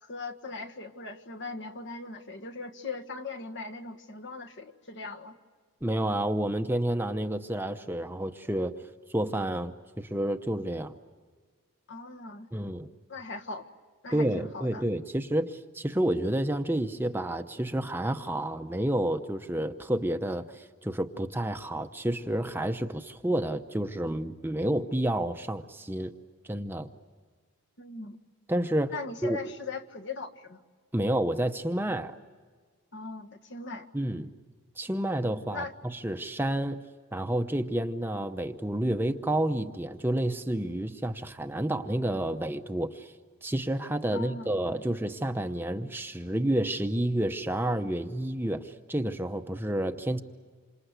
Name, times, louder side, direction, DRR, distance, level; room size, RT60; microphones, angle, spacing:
voice 1, 0.0-5.3 11.9-12.5 13.1-13.7 14.0-14.8 27.8-28.2 28.9-30.6 32.9-33.9 35.5-35.7 44.1-44.6, left 3 dB, 55° left, 6 dB, 1.6 m, -39 dB
voice 2, 5.8-8.7 9.1-10.9 12.5-12.9 14.1-26.1 26.4-26.9 28.5-29.0 29.2-29.4 30.9-32.1 33.9-34.3 34.8-36.8 37.1-43.1 43.4-50.2, right 1 dB, 10° right, 7 dB, 0.8 m, -30 dB
27.5 x 26.5 x 8.2 m, 1.5 s
head